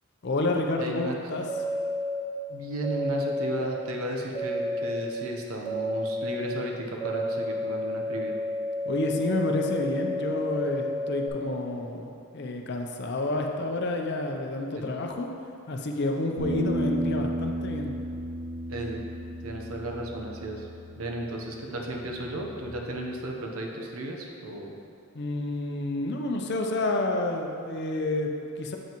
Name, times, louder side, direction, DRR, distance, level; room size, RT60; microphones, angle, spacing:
voice 1, 0.2-1.5 8.8-15.3 15.7-18.0 25.1-28.8, left 2 dB, 50° left, 2 dB, 0.6 m, -29 dB
voice 2, 0.8-1.2 2.5-8.4 14.8-14.9 18.7-19.0 19.4-20.7 20.9-24.7, right 1 dB, 85° right, 0 dB, 0.8 m, -34 dB
sound 1, 1.5-2.2 2.8-3.6 4.3-5.0 5.6-6.3 7.0-11.3, left 1 dB, 10° right, 0.6 m, -31 dB
sound 2, 16.4-22.6, equal, 65° right, 1.4 m, -34 dB
7.4 x 5.8 x 3.0 m, 2.5 s
head